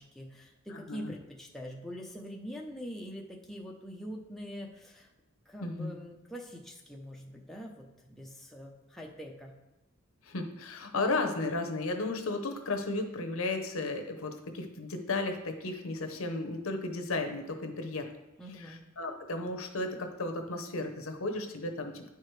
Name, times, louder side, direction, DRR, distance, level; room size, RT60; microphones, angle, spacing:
voice 1, 0.0-5.1 5.5-9.5 18.4-18.8, equal, ahead, -2 dB, 0.6 m, -44 dB
voice 2, 0.7-1.1 5.6-5.9 10.2-18.1 18.5-22.1, left 2 dB, 75° left, 5 dB, 0.8 m, -34 dB
9.6 x 4.7 x 3.2 m, 1.0 s
head